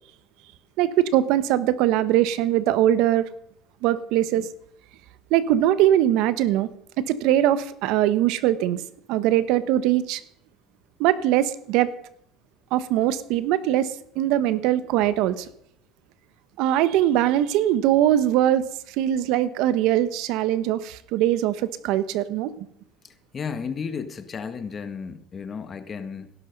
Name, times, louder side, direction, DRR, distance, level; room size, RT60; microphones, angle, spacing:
voice 1, 0.8-3.3 3.8-4.5 5.3-6.7 7.0-10.2 11.0-11.9 12.7-15.5 16.6-22.7, right 12 dB, 70° right, 14 dB, 1.1 m, -22 dB
voice 2, 23.3-26.3, left 6 dB, 30° left, 10 dB, 1.7 m, -33 dB
17.0 x 12.0 x 5.4 m, 0.70 s
supercardioid pair, 105°, 0 cm